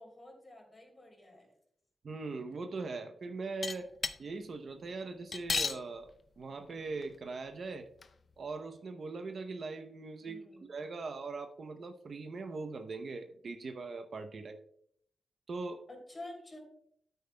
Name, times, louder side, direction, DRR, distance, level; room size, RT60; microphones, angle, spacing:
voice 1, 0.0-1.5 10.2-10.7 15.9-16.6, left 1 dB, 20° left, 2 dB, 3.2 m, -49 dB
voice 2, 2.0-3.9 4.2-7.9 8.4-14.6 15.5-15.8, right 3 dB, 50° right, 7 dB, 0.7 m, -41 dB
sound 1, 3.6-4.2 5.3-5.8 6.7-6.8 7.0-7.1 8.0-8.1, left 4 dB, 40° left, 0.5 m, -32 dB
12.5 x 9.0 x 2.2 m, 0.67 s
wide cardioid pair, 150°, 0 cm